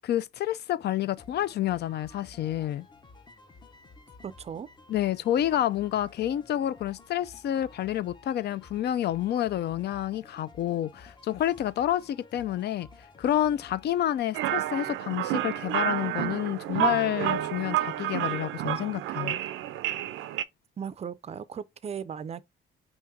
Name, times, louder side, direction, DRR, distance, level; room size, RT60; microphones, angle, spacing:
voice 1, 0.0-2.9 4.9-12.9 13.2-19.4, left 12 dB, 55° left, 0.4 m, -29 dB
sound 1, 1.2-14.2, left 3 dB, 20° left, 0.7 m, -53 dB
voice 2, 4.2-4.7 20.8-22.4, right 7 dB, 35° right, 0.4 m, -37 dB
sound 2, 14.3-20.4, right 13 dB, 85° right, 0.4 m, -30 dB
5.2 x 3.6 x 2.7 m
cardioid pair, 90°, 20 cm